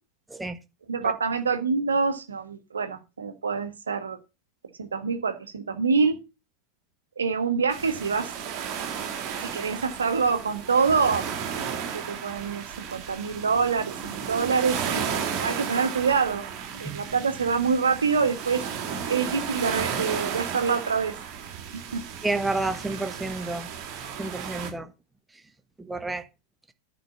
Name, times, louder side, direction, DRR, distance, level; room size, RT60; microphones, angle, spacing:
voice 1, 0.9-4.2 4.8-6.2 7.2-8.3 9.4-11.2 11.9-16.5 16.7-18.6 19.1-21.1 21.9-22.0, right 5 dB, 70° right, 1.6 m, -26 dB
sound 1, 7.7-24.7, right 7 dB, 40° right, 2.9 m, -34 dB
voice 2, 22.2-23.7 24.2-24.9 25.8-26.2, right 2 dB, 5° right, 1.3 m, -29 dB
10.5 x 5.3 x 7.1 m
figure-of-eight pair, 90°, 0 cm